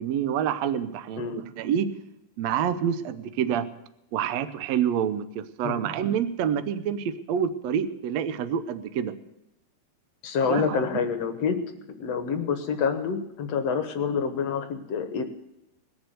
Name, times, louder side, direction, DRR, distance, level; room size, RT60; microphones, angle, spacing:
voice 1, 0.0-1.9 2.4-3.7 4.1-9.1 10.4-10.9, right 8 dB, 80° right, 12 dB, 1.5 m, -27 dB
voice 2, 10.2-11.6 12.0-15.2, left 6 dB, 60° left, 8 dB, 1.8 m, -27 dB
20.5 x 7.2 x 7.9 m, 0.87 s
omnidirectional pair, 4.2 m